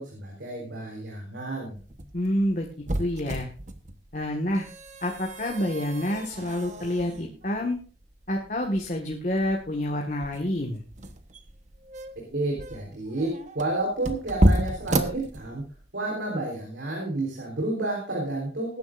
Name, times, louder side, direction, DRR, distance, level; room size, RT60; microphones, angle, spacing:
voice 1, 0.0-1.8 12.3-15.7 15.9-18.8, right 2 dB, 85° right, -1 dB, 3.9 m, -30 dB
sound 1, 1.7-15.9, right 1 dB, 40° right, 1.1 m, -31 dB
voice 2, 2.1-2.7 3.0-3.5 4.1-4.6 5.0-7.8 8.3-10.8, left 1 dB, 45° left, 1 dB, 1.7 m, -28 dB
20.5 x 10.5 x 2.6 m, 0.39 s
head